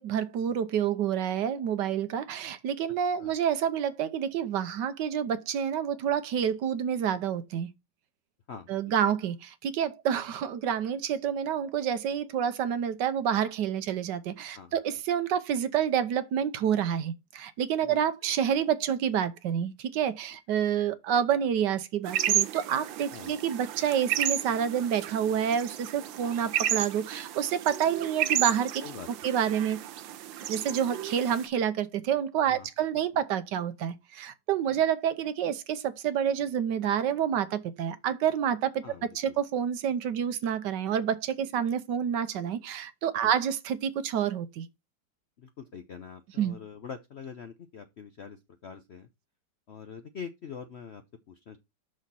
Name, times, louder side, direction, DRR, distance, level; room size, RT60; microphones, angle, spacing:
voice 1, 0.0-7.7 8.7-28.8 29.2-29.8 30.5-38.8 39.1-44.7 46.4-46.6, right 9 dB, 70° right, 1.3 m, -28 dB
voice 2, 8.5-8.9 14.5-14.8 17.8-18.0 23.1-23.3 28.8-29.1 32.4-32.7 32.9-33.0 38.8-39.3 43.2-43.3 45.4-49.1 49.7-51.6, left 6 dB, 65° left, 0.6 m, -44 dB
sound 1, 22.1-31.5, right 11 dB, 90° right, 1.5 m, -32 dB
6.5 x 6.3 x 4.1 m
omnidirectional pair, 2.0 m